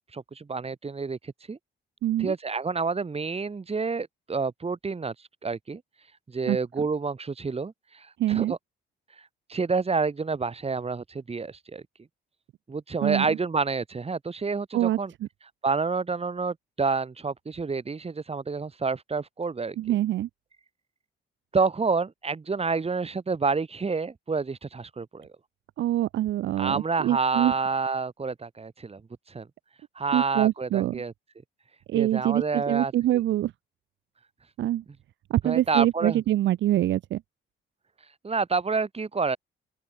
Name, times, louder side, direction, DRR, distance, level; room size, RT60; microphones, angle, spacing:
voice 1, 0.0-1.6 2.2-5.1 5.4-5.8 6.3-8.6 9.5-11.8 12.7-15.1 15.6-19.8 21.5-25.3 26.6-29.0 29.3-29.5 30.0-31.1 31.9-32.9 35.4-36.2 38.2-39.4, right 4 dB, 30° right, 5.8 m, -28 dB
voice 2, 2.0-2.3 6.5-6.6 8.2-8.5 13.0-13.3 14.7-15.3 19.8-20.3 25.8-27.5 30.1-31.0 31.9-33.5 34.6-34.8 35.3-37.2, right 13 dB, 70° right, 0.6 m, -25 dB
open air
cardioid pair, 90°, 20 cm